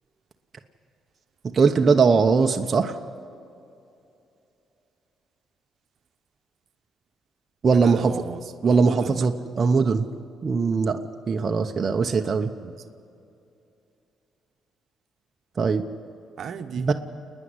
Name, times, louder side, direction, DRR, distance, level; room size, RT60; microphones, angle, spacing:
voice 1, 1.5-2.9 7.6-8.1 8.6-10.1 10.4-11.0 11.3-12.5 15.6-15.8 16.8-16.9, right 5 dB, 40° right, 3 dB, 1.0 m, -20 dB
voice 2, 7.6-9.3 11.3-11.8 12.1-12.9 16.4-16.9, right 7 dB, 60° right, 8 dB, 1.2 m, -37 dB
29.0 x 10.0 x 9.7 m, 2.7 s
cardioid pair, 90°, 0 cm